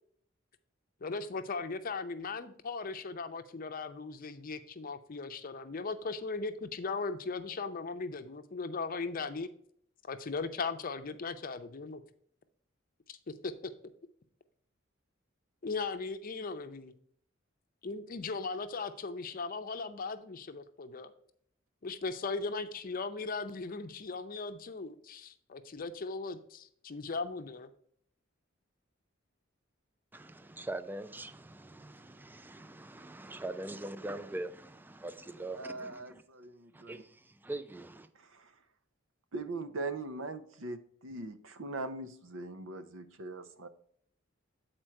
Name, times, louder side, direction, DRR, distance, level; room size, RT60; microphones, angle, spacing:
voice 1, 1.0-9.5 10.0-12.0 13.4-13.5 15.6-16.9 17.8-21.1 21.8-27.7, left 4 dB, 45° left, 0.6 m, -38 dB
voice 2, 30.1-36.2 36.7-38.1, right 2 dB, 10° right, 0.4 m, -42 dB
voice 3, 35.5-37.0 38.1-38.5 39.3-43.7, right 2 dB, 85° right, 0.7 m, -41 dB
7.6 x 4.4 x 4.5 m
head